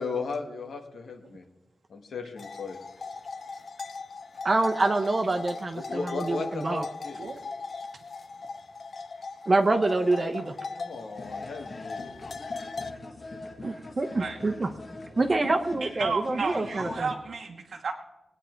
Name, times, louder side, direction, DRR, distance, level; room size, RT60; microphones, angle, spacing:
voice 1, 0.0-1.5 1.9-2.8 5.7-7.2 10.7-12.0, left 4 dB, 90° left, 4 dB, 1.6 m, -35 dB
sound 1, 2.4-12.9, left 4 dB, 60° left, 0.7 m, -39 dB
voice 2, 4.4-6.8 9.5-10.5 13.6-14.7 15.2-17.1, right 2 dB, 40° right, 5 dB, 0.8 m, -26 dB
sound 2, 11.1-17.1, left 2 dB, 45° left, 1.8 m, -42 dB
voice 3, 15.8-17.9, right 4 dB, 75° right, 1 dB, 1.0 m, -32 dB
20.5 x 9.0 x 4.5 m, 1.0 s
wide cardioid pair, 115°, 0 cm